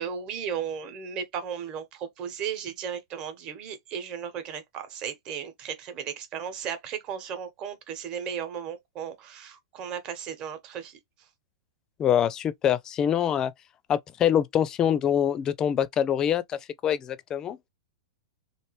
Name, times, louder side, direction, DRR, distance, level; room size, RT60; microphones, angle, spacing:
voice 1, 0.0-11.0, right 7 dB, 35° right, 1.0 m, -35 dB
voice 2, 12.0-13.5 13.9-17.6, left 9 dB, 25° left, 0.4 m, -25 dB
3.2 x 2.5 x 3.0 m
hypercardioid pair, 120°, 2 cm